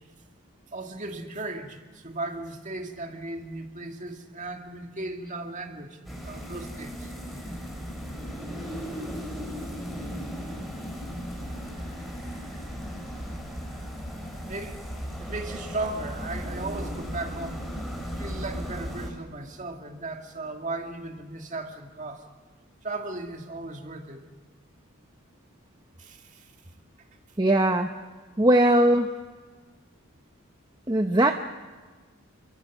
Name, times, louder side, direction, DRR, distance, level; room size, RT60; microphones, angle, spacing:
voice 1, 0.7-7.1 14.5-14.8 15.2-17.6 18.2-22.3 22.8-24.2 26.0-26.5, right 2 dB, 35° right, 4 dB, 2.3 m, -36 dB
sound 1, 6.0-19.1, equal, ahead, 5.6 m, -36 dB
voice 2, 27.4-27.9 28.4-29.1 30.9-31.3, right 1 dB, 20° right, 5 dB, 0.9 m, -20 dB
29.0 x 23.0 x 6.3 m, 1.4 s
head